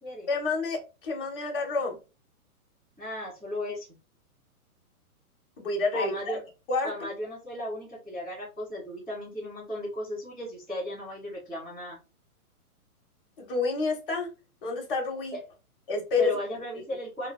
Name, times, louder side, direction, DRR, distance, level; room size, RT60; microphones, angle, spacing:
voice 1, 0.3-2.0 5.6-6.4 6.7-7.1 13.4-14.3 14.6-15.4 15.9-16.3, left 3 dB, 40° left, 0 dB, 0.8 m, -29 dB
voice 2, 3.0-3.9 5.9-6.4 6.8-12.0 15.3-15.4 16.2-17.3, left 1 dB, ahead, -13 dB, 0.9 m, -36 dB
2.4 x 2.3 x 2.2 m, 0.30 s
hypercardioid pair, 170°, 45 cm